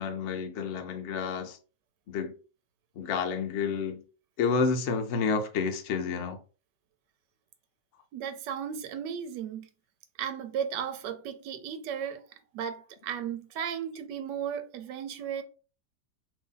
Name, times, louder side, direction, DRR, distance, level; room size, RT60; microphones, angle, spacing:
voice 1, 0.0-1.6 2.1-2.3 3.0-4.0 4.4-6.4, left 5 dB, 65° left, 0.7 m, -29 dB
voice 2, 8.1-9.7 10.2-12.2 12.5-15.4, right 8 dB, 85° right, 1.2 m, -35 dB
2.8 x 2.6 x 3.7 m
omnidirectional pair, 1.8 m